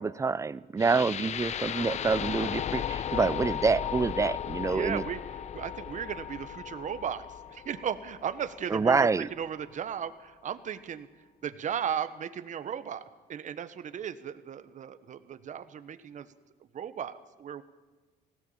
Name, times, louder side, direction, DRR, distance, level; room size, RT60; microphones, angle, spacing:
voice 1, 0.0-5.0 8.7-9.3, right 4 dB, 20° right, 19 dB, 0.6 m, -27 dB
sound 1, 0.8-8.8, left 9 dB, 40° left, 0.6 m, -35 dB
voice 2, 4.7-11.1 11.4-13.0 13.3-16.3 16.6-17.6, right 8 dB, 45° right, 13 dB, 1.3 m, -36 dB
19.0 x 16.5 x 8.8 m, 1.2 s
cardioid pair, 110°, 17 cm